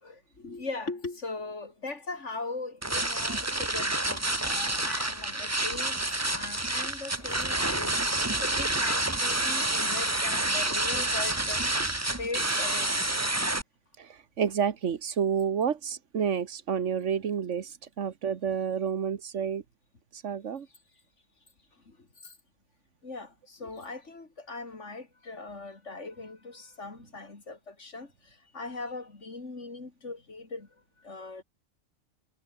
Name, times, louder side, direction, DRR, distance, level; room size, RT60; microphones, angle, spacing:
voice 1, 0.0-11.8 12.2-13.0 21.9-22.3 23.0-30.7 31.0-31.4, left 3 dB, 80° left, 3.6 m, -40 dB
sound 1, 2.8-13.6, right 2 dB, 15° right, 1.3 m, -28 dB
voice 2, 14.0-19.6 20.1-20.7, right 7 dB, 90° right, 1.6 m, -30 dB
omnidirectional pair, 1.2 m